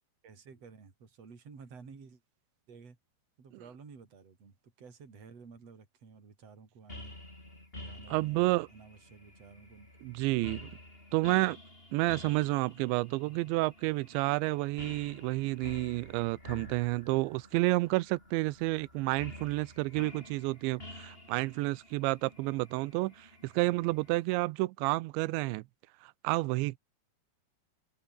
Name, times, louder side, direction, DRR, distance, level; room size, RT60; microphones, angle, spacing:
voice 1, 0.2-2.2 2.7-3.0 3.4-7.2 7.7-9.9, right 5 dB, 35° right, 5.3 m, -53 dB
sound 1, 6.9-24.2, left 1 dB, 10° left, 6.7 m, -50 dB
voice 2, 8.1-8.7 10.0-10.7 11.1-11.6 11.9-25.6 26.0-26.8, right 21 dB, 80° right, 2.9 m, -30 dB
omnidirectional pair, 5.5 m